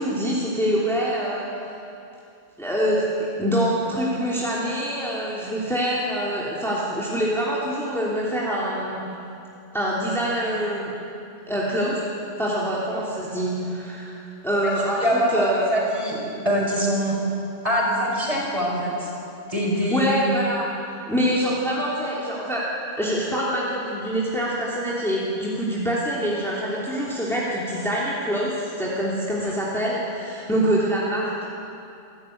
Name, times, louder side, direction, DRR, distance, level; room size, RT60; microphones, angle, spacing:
voice 1, 0.0-1.7 2.6-3.1 3.4-9.0 9.7-10.9 11.5-12.0 12.4-15.8 19.9-20.7 21.1-22.6 23.0-31.5, equal, ahead, -6 dB, 3.1 m, -25 dB
voice 2, 15.0-16.2 16.4-17.2 17.6-19.1 19.5-20.1, equal, 30° right, -3 dB, 5.5 m, -23 dB
27.5 x 12.5 x 9.4 m, 2.7 s
omnidirectional pair, 1.3 m